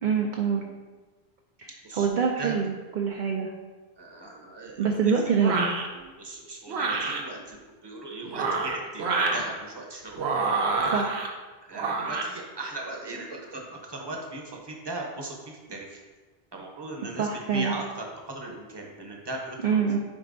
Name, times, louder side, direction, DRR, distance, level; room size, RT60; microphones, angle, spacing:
voice 1, 0.0-0.7 1.6-3.5 4.8-5.7 6.0-6.1 10.9-11.3 17.2-17.7 19.6-20.0, right 6 dB, 55° right, 1 dB, 0.6 m, -25 dB
voice 2, 4.0-5.1 6.2-10.2 10.5-10.7 11.6-15.4 15.7-16.0 16.5-19.9, right 2 dB, 25° right, 1 dB, 0.9 m, -38 dB
sound 1, 5.4-5.9 6.7-7.2 8.2-9.4 10.1-11.3 11.7-12.3, right 4 dB, 90° right, 1.0 m, -27 dB
9.5 x 4.2 x 2.6 m, 1.3 s
omnidirectional pair, 1.1 m